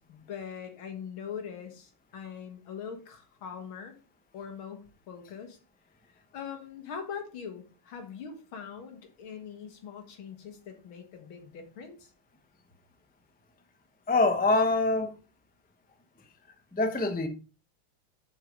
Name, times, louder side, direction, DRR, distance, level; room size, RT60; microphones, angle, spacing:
voice 1, 0.0-4.0 4.3-5.6 6.1-12.1, left 7 dB, 85° left, 2.3 m, -42 dB
voice 2, 14.1-15.1 16.7-17.3, left 3 dB, 10° left, 0.4 m, -24 dB
7.7 x 5.7 x 5.2 m
omnidirectional pair, 2.2 m